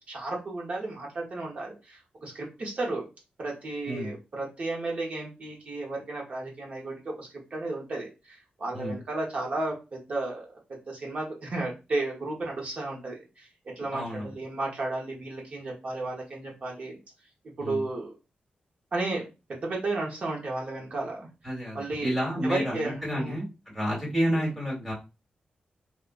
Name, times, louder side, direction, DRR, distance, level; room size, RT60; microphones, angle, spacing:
voice 1, 0.1-3.0 3.4-10.5 10.9-13.5 13.8-16.9 17.6-18.1 18.9-21.3 21.7-22.1 22.4-23.4 24.3-24.5, right 2 dB, 45° right, -1 dB, 1.2 m, -33 dB
voice 2, 13.9-14.3 17.6-17.8 21.4-23.5 23.7-24.9, equal, 5° right, -4 dB, 1.7 m, -30 dB
3.6 x 2.7 x 2.6 m, 0.28 s
wide cardioid pair, 155°, 3 cm